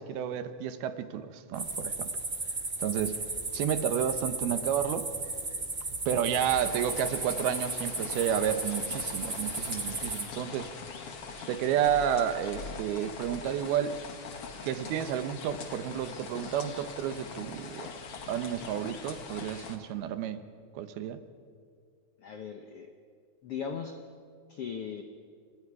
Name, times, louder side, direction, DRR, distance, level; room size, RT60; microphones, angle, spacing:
voice 1, 0.0-2.1 2.8-3.2 3.5-5.1 6.1-10.7 11.5-14.0 14.6-17.9 18.3-20.4 20.7-21.2, right 9 dB, 85° right, 10 dB, 3.0 m, -31 dB
sound 1, 1.5-10.2, right 2 dB, 25° right, 2.1 m, -35 dB
sound 2, 6.3-19.8, left 5 dB, 50° left, 2.2 m, -43 dB
voice 2, 22.2-22.9 23.4-24.0 24.5-25.0, left 7 dB, 75° left, 6 dB, 1.3 m, -38 dB
29.0 x 26.5 x 4.9 m, 2.2 s
omnidirectional pair, 4.3 m